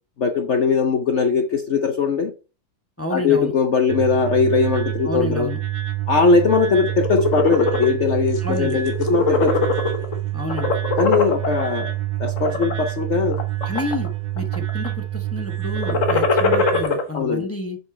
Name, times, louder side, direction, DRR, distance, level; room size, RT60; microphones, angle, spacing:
voice 1, 0.2-2.3 3.1-5.5 6.1-9.7 11.0-11.9 12.2-13.4 17.1-17.5, left 5 dB, 60° left, 0.7 m, -20 dB
voice 2, 3.0-3.5 5.0-5.6 8.4-8.8 10.3-10.7 13.7-14.1 14.3-17.8, left 2 dB, 15° left, 0.5 m, -29 dB
sound 1, 3.9-16.8, right 13 dB, 90° right, 1.8 m, -27 dB
sound 2, 6.9-7.9 8.3-8.6 8.9-10.1 10.5-11.6 12.3-12.7 13.3-14.1 14.4-14.9 15.7-17.0, left 3 dB, 45° left, 1.3 m, -21 dB
6.6 x 5.3 x 4.3 m
omnidirectional pair, 2.1 m